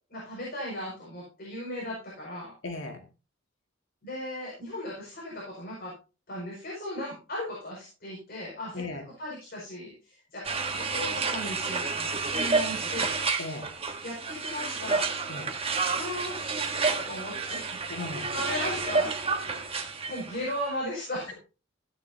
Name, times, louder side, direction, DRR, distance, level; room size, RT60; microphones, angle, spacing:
voice 1, 0.1-2.5 4.0-5.9 6.3-8.8 9.2-13.1 14.0-15.1 15.9-17.8 18.1-19.2 19.9-21.3, left 1 dB, 50° left, -4 dB, 5.9 m, -37 dB
voice 2, 2.6-3.0 8.7-9.0 13.4-13.7 15.3-15.5 17.9-18.3, left 2 dB, 80° left, 4 dB, 2.1 m, -36 dB
sound 1, 10.4-20.5, right 4 dB, 30° right, 1.4 m, -30 dB
16.5 x 9.3 x 2.8 m, 0.33 s
head